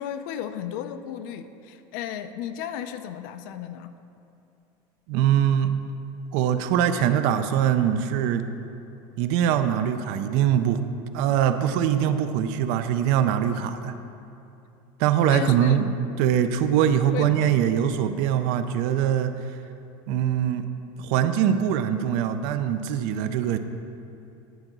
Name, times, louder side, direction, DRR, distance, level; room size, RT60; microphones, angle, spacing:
voice 1, 0.0-3.9 13.5-13.7 15.3-15.8 17.1-17.6, left 10 dB, 65° left, 10 dB, 0.5 m, -34 dB
voice 2, 5.1-5.8 6.3-8.5 9.2-10.8 11.1-13.9 15.0-19.4 20.1-20.7 21.0-23.6, right 9 dB, 55° right, 10 dB, 0.4 m, -23 dB
11.0 x 3.9 x 6.0 m, 2.7 s
cardioid pair, 180°, 11 cm